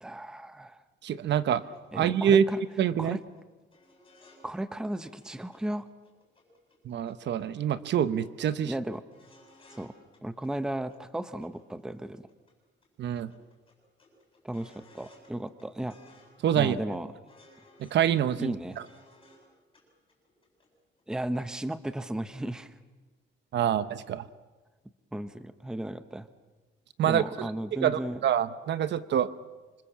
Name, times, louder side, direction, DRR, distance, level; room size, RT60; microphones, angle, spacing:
voice 1, 0.0-0.8 1.9-2.6 3.0-3.2 4.4-5.9 8.7-9.0 9.7-9.9 10.2-12.2 14.4-16.0 16.5-17.1 18.4-18.8 21.1-22.8 25.1-26.3 27.0-28.2, right 1 dB, 5° right, 11 dB, 0.8 m, -35 dB
voice 2, 1.0-1.6 1.9-2.4 2.8-3.2 6.8-8.7 13.0-13.3 16.4-16.8 17.8-18.5 23.5-24.2 27.0-27.5 27.8-29.3, right 9 dB, 60° right, 13 dB, 1.0 m, -26 dB
sound 1, 1.7-1.8 2.1-2.2 2.4-2.9 3.2-3.4 3.7-4.5 4.7-4.8 5.1-5.6 5.9-7.4 7.7-8.0 8.2-8.3 8.6-9.9 10.1-11.0 11.4-12.5 12.8-12.9 13.2-15.3 15.6-16.5 16.8-19.5 19.7-19.8 20.1-20.7 21.0-21.1, left 1 dB, 25° left, 7.7 m, -59 dB
26.5 x 25.5 x 7.4 m, 1.3 s
cardioid pair, 180°, 20 cm